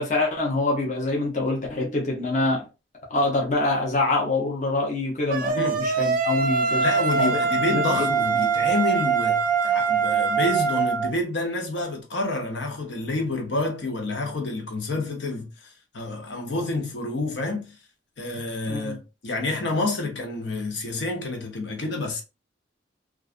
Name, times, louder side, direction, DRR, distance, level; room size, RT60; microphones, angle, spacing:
voice 1, 0.0-2.7 3.1-6.8 7.2-7.3 7.7-8.1 18.7-19.0, left 2 dB, 40° left, 0.6 m, -25 dB
sound 1, 5.3-11.1, right 5 dB, 45° right, 0.4 m, -23 dB
voice 2, 5.6-5.9 6.8-17.8 18.2-22.2, left 2 dB, 75° left, 0.7 m, -28 dB
2.4 x 2.3 x 2.4 m
head